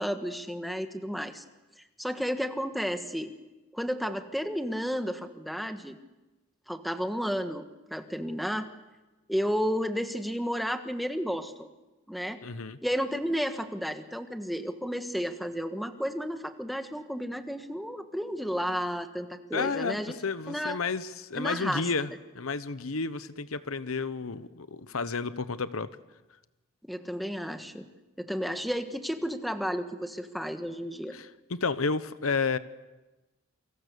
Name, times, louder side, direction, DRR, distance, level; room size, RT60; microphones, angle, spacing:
voice 1, 0.0-1.4 1.8-3.3 3.7-6.0 6.7-8.7 9.3-11.7 12.1-12.4 12.8-20.2 20.5-20.8 21.4-21.9 26.8-27.9 28.2-31.1, equal, ahead, 7 dB, 1.4 m, -32 dB
voice 2, 12.4-12.8 19.5-25.9 31.1-32.6, left 4 dB, 80° left, 14 dB, 1.0 m, -31 dB
28.5 x 24.5 x 6.9 m, 1.1 s
head